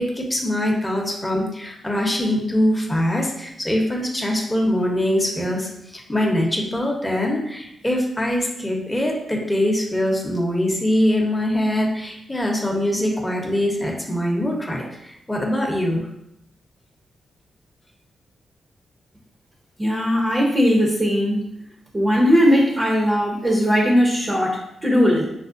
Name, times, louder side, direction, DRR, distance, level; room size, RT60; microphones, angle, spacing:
voice 1, 0.0-16.0, left 1 dB, 10° left, -1 dB, 0.8 m, -23 dB
voice 2, 19.8-21.4 21.9-25.2, equal, 25° right, -3 dB, 0.7 m, -18 dB
4.8 x 2.0 x 2.5 m, 0.81 s
cardioid pair, 70°, 0 cm